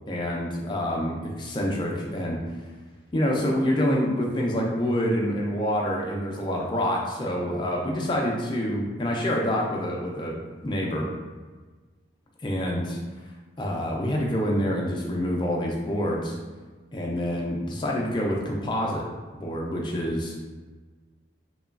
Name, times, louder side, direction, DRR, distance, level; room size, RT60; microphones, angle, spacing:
voice 1, 0.1-2.4 3.1-10.4 10.6-11.1 12.4-13.0 13.6-16.4 16.9-19.1 19.3-20.4, equal, 25° left, -2 dB, 0.3 m, -27 dB
2.9 x 2.2 x 2.3 m, 1.3 s
head